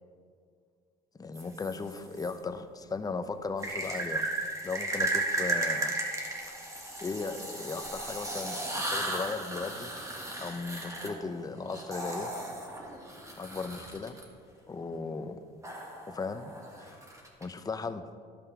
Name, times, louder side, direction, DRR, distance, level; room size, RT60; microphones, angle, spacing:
voice 1, 1.2-4.3 4.6-5.9 7.0-9.9 10.4-12.3 13.4-14.2 14.7-15.4 16.1-16.9 17.4-18.1, left 4 dB, 20° left, 10 dB, 0.6 m, -37 dB
sound 1, 1.3-2.3 3.6-14.2 15.6-17.4, right 2 dB, 20° right, 1.7 m, -35 dB
13.0 x 5.5 x 4.8 m, 2.2 s
cardioid pair, 110°, 17 cm